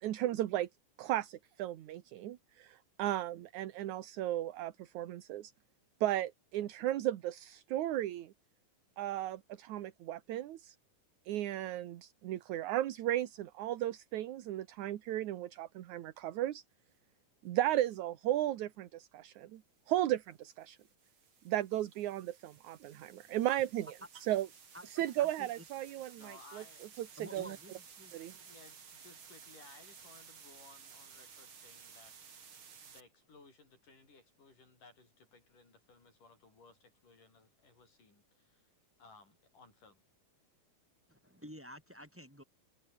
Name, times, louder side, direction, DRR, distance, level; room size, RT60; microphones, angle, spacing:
voice 1, 0.0-0.7 1.0-5.5 6.0-8.3 9.0-10.8 11.3-16.6 17.4-19.6 19.9-20.8 21.5-24.5 24.8-26.6 27.0-27.6 28.1-28.3, right 13 dB, 70° right, 2.4 m, -35 dB
sound 1, 17.7-18.0 20.1-33.0, right 6 dB, 40° right, 2.9 m, -56 dB
voice 2, 24.7-25.5 27.2-28.1 41.1-42.4, equal, 5° right, 3.1 m, -51 dB
voice 3, 26.2-26.9 28.4-32.1 32.8-38.7 39.0-40.0, left 3 dB, 70° left, 9.6 m, -60 dB
omnidirectional pair, 3.8 m